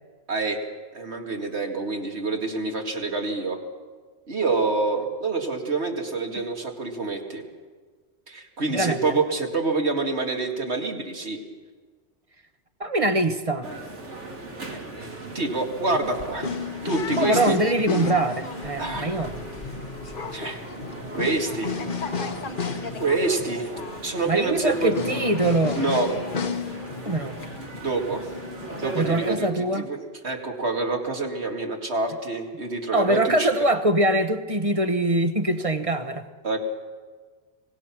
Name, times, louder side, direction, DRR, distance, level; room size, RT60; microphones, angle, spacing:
voice 1, 0.3-0.7 0.9-3.6 4.3-7.4 8.3-11.4 15.3-16.5 16.8-17.6 18.8-19.1 20.3-20.6 21.1-21.8 23.0-23.7 24.0-24.9 25.8-26.1 27.8-28.3 28.8-33.5 36.4-36.6, right 3 dB, 70° right, 2 dB, 2.6 m, -27 dB
voice 2, 8.7-9.2 12.8-13.7 17.2-19.3 24.3-25.8 27.1-27.4 28.9-29.9 32.9-36.3, right 1 dB, 30° right, 9 dB, 1.0 m, -23 dB
sound 1, 13.6-29.4, right 2 dB, 85° right, 2.7 m, -39 dB
sound 2, 15.9-29.0, left 4 dB, 50° left, 1.2 m, -33 dB
25.5 x 19.0 x 6.1 m, 1.5 s
omnidirectional pair, 1.2 m